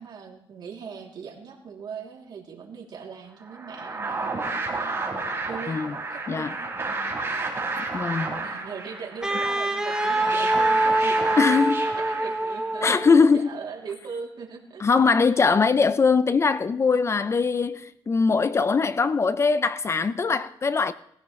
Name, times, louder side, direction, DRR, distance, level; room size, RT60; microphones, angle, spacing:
voice 1, 0.0-4.2 4.7-4.9 5.5-5.8 6.1-7.1 8.4-15.4, right 6 dB, 55° right, 2.9 m, -40 dB
sound 1, 3.5-12.8, right 3 dB, 25° right, 3.9 m, -31 dB
voice 2, 7.8-8.4 11.4-11.9 12.8-13.5 14.8-20.9, left 5 dB, 30° left, 0.5 m, -21 dB
Wind instrument woodwind instrument, 9.2-13.3, right 1 dB, 10° right, 1.3 m, -25 dB
19.5 x 15.0 x 3.2 m
cardioid pair, 105°, 9 cm